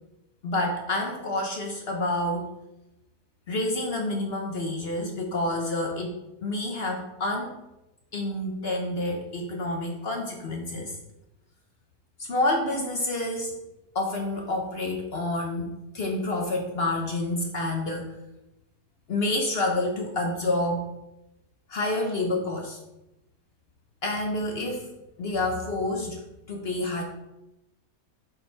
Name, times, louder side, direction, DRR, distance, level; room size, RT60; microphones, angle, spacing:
voice 1, 0.4-2.5 3.5-7.5 8.1-11.0 12.2-13.6 13.9-15.7 15.9-18.2 19.1-20.8 21.7-22.8 24.0-24.8 25.2-26.2 26.5-27.0, left 2 dB, 50° left, 2 dB, 0.8 m, -28 dB
6.7 x 3.9 x 4.3 m, 0.93 s
omnidirectional pair, 1.7 m